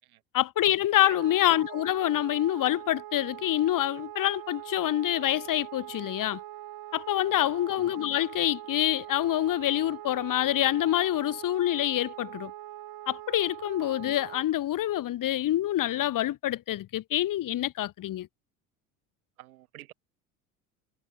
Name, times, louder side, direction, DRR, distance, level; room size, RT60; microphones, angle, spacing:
voice 1, 0.3-6.4 6.9-12.5 13.1-18.3, left 13 dB, 50° left, 2.0 m, -26 dB
Wind instrument woodwind instrument, 1.0-14.5, right 14 dB, 55° right, 2.7 m, -43 dB
voice 2, 19.4-19.9, right 15 dB, 85° right, 7.1 m, -48 dB
hypercardioid pair, 80°, 42 cm